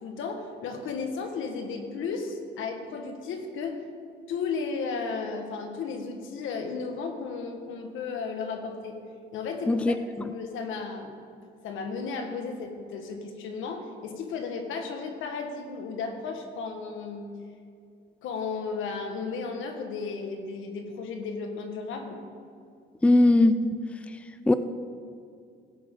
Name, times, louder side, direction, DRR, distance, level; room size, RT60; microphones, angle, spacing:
voice 1, 0.0-3.8 4.3-9.0 9.3-11.1 11.6-17.3 18.2-22.2, left 4 dB, 85° left, 4 dB, 1.4 m, -34 dB
voice 2, 23.0-23.8 24.5-24.6, left 2 dB, 5° left, 10 dB, 0.4 m, -19 dB
16.0 x 8.2 x 3.7 m, 2.3 s
cardioid pair, 90°, 20 cm